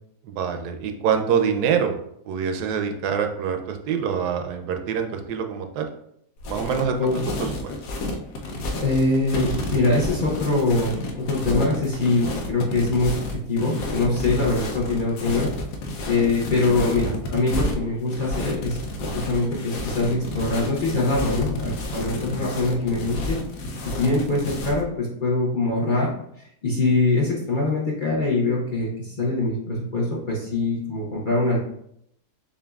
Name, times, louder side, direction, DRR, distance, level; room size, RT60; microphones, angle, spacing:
voice 1, 0.2-1.9 2.3-5.9 6.5-7.1 7.4-7.7, right 7 dB, 85° right, 6 dB, 1.1 m, -25 dB
sound 1, 6.4-24.8, left 1 dB, 85° left, 1.3 m, -30 dB
voice 2, 8.8-15.5 16.0-18.8 19.2-23.4 23.8-26.1 26.4-31.6, left 2 dB, 40° left, -5 dB, 0.7 m, -23 dB
6.9 x 2.6 x 2.3 m, 0.74 s
omnidirectional pair, 1.7 m